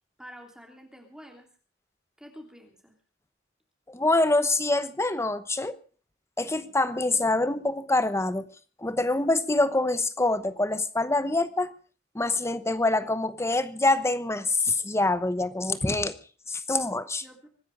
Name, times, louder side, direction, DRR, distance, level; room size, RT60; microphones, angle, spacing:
voice 1, 0.2-1.5 2.2-2.9 17.2-17.5, equal, 5° right, 3.1 m, -48 dB
voice 2, 3.9-5.8 6.4-8.4 8.8-11.7 12.1-16.1 16.5-17.2, left 2 dB, 15° left, 1.0 m, -25 dB
24.5 x 10.5 x 5.2 m
head